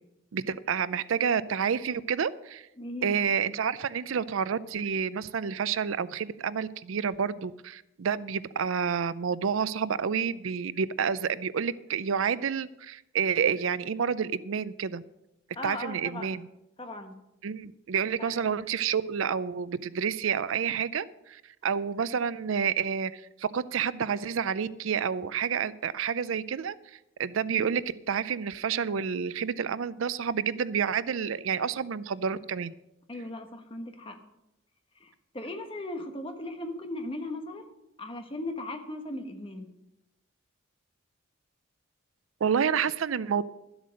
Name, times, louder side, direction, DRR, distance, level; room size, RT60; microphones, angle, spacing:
voice 1, 0.3-2.7 3.0-15.0 15.6-16.5 17.4-26.7 27.2-32.7 42.4-43.4, right 7 dB, 80° right, 17 dB, 0.5 m, -29 dB
voice 2, 2.8-3.2 15.5-16.4 16.8-17.1 18.2-18.5 33.1-34.2 35.0-37.7 38.0-39.7, left 1 dB, 25° left, 5 dB, 1.2 m, -38 dB
12.0 x 8.0 x 6.4 m, 0.89 s
head